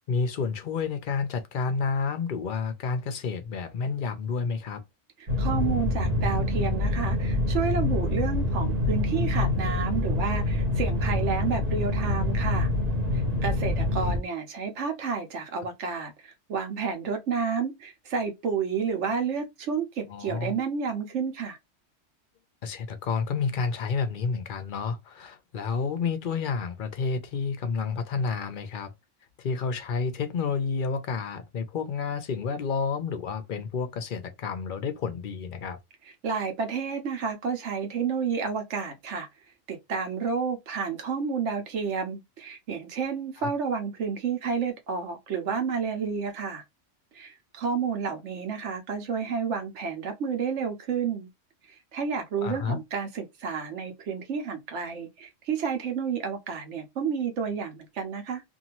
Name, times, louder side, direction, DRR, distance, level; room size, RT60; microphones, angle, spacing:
voice 1, 0.1-4.8 20.1-20.5 22.6-28.9 29.4-35.8 43.4-43.5 52.4-52.8, left 5 dB, 55° left, 0.6 m, -30 dB
voice 2, 5.2-12.7 13.1-21.6 36.2-39.3 39.7-46.6 47.1-51.3 51.7-58.4, right 6 dB, 70° right, 1.2 m, -30 dB
sound 1, 5.3-14.2, left 2 dB, 45° right, 1.2 m, -26 dB
2.7 x 2.6 x 2.8 m
omnidirectional pair, 1.3 m